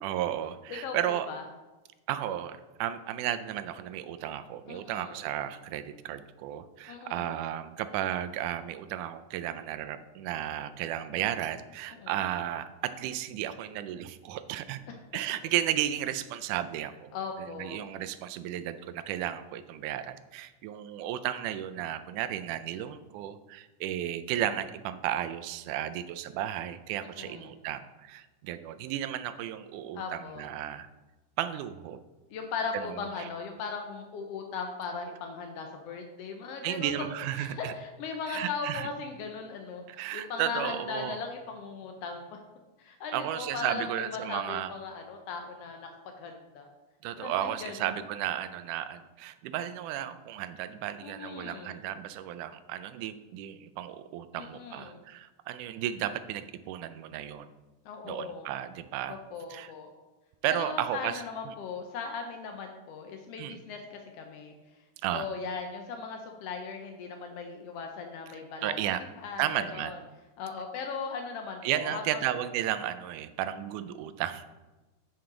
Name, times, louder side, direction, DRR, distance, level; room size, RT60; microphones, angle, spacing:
voice 1, 0.0-1.3 2.1-14.8 15.1-17.1 17.4-30.9 31.4-32.0 32.7-33.0 36.6-37.7 38.3-38.9 39.9-41.2 43.1-44.7 47.0-57.5 58.1-59.2 59.5-59.7 60.4-61.5 63.4-63.6 65.0-65.3 68.6-69.0 69.4-69.9 71.6-74.4, right 11 dB, 80° right, 12 dB, 2.0 m, -34 dB
voice 2, 0.7-1.4 4.7-5.2 6.9-7.4 11.9-12.2 14.9-15.0 17.1-17.8 27.0-27.5 29.9-30.5 32.3-36.9 37.3-42.4 42.8-45.9 46.2-46.7 47.2-48.0 51.0-51.8 54.3-55.0 57.8-58.5 59.1-59.9 60.6-64.6 65.1-68.8 69.2-70.0 70.4-72.3, left 5 dB, 85° left, 4 dB, 1.3 m, -38 dB
9.3 x 5.8 x 3.8 m, 1.1 s
omnidirectional pair, 3.7 m